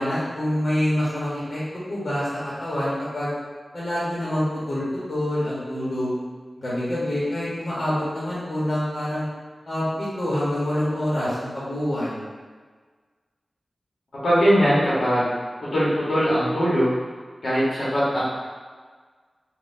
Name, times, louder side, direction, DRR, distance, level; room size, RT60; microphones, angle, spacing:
voice 1, 0.0-1.6 1.9-3.3 3.7-4.8 5.1-6.2 6.6-9.3 9.6-12.2, left 1 dB, 55° left, -9 dB, 1.1 m, -26 dB
voice 2, 14.2-15.3 15.7-16.9 17.4-18.2, equal, 85° left, -9 dB, 1.2 m, -20 dB
4.0 x 2.4 x 2.6 m, 1.5 s
wide cardioid pair, 85°, 0 cm